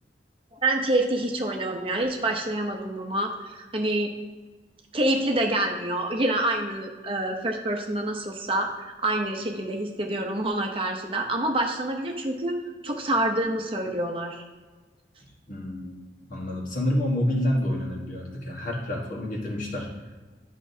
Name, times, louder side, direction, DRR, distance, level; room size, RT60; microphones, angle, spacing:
voice 1, 0.5-4.1 4.9-12.6 12.8-14.4, right 1 dB, 30° right, 2 dB, 0.8 m, -27 dB
voice 2, 15.5-16.0 16.3-19.9, left 1 dB, 45° left, -1 dB, 1.4 m, -28 dB
11.5 x 6.0 x 2.7 m, 1.3 s
head